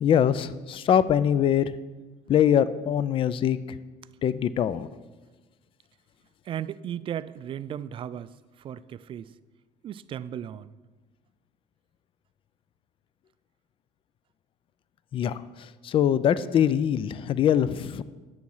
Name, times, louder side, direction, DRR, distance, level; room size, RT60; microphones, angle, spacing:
voice 1, 0.0-1.7 2.3-3.8 4.2-4.9 15.1-15.4 15.8-18.0, left 9 dB, 40° left, 0.4 m, -23 dB
voice 2, 6.5-8.3 8.6-9.3 9.8-10.7, right 10 dB, 40° right, 0.3 m, -35 dB
9.8 x 7.0 x 4.7 m
cardioid pair, 110°, 14 cm